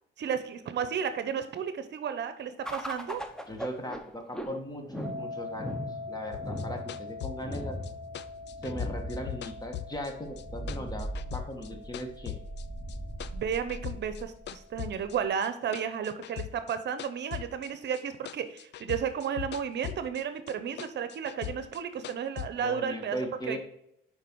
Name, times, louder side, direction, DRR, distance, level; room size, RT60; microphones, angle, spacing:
voice 1, 0.2-3.2 13.3-23.2 23.5-23.6, right 7 dB, 60° right, 10 dB, 0.8 m, -33 dB
sound 1, 2.6-15.3, equal, 5° left, 0.9 m, -39 dB
voice 2, 3.5-5.7 6.1-7.8 8.6-12.4 22.6-23.6, equal, 20° left, 4 dB, 1.5 m, -38 dB
sound 2, 5.0-15.9, left 3 dB, 20° right, 2.5 m, -45 dB
sound 3, 6.3-10.4 10.7-12.6 12.9-14.2 14.5-18.0 18.3-20.2 20.5-22.5, left 12 dB, 60° left, 0.4 m, -40 dB
6.7 x 5.0 x 4.6 m, 0.77 s
cardioid pair, 90°, 20 cm